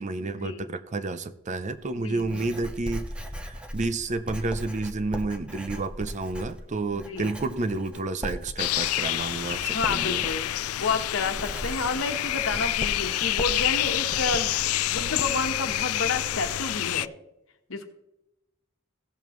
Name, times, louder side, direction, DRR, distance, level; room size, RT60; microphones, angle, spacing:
voice 1, 0.0-10.2, right 3 dB, 35° right, 11 dB, 0.5 m, -30 dB
Writing, 1.6-16.9, equal, 5° right, 0.8 m, -39 dB
voice 2, 2.0-2.4 6.9-7.3 9.7-10.5 10.8-14.5 14.9-17.1 17.7-17.9, left 3 dB, 65° left, 5 dB, 1.2 m, -30 dB
sound 1, 8.6-17.1, left 14 dB, 85° left, 0.4 m, -28 dB
16.5 x 7.1 x 3.1 m, 0.88 s
head